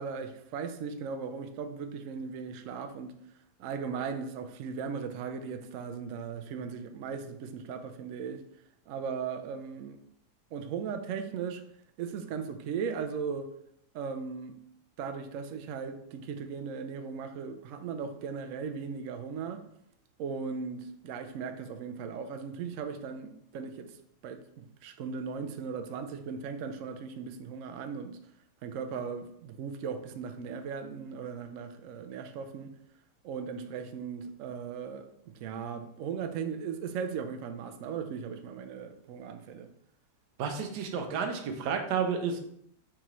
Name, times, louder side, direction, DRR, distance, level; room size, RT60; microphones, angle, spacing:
voice 1, 0.0-3.1 3.6-8.4 8.9-10.0 10.5-11.6 12.0-13.5 13.9-14.5 15.0-19.6 20.2-23.9 24.2-28.2 28.6-32.7 33.2-39.7, right 6 dB, 70° right, 0.8 m, -37 dB
voice 2, 40.4-42.4, right 6 dB, 90° right, 1.3 m, -31 dB
4.7 x 3.7 x 3.0 m
omnidirectional pair, 1.7 m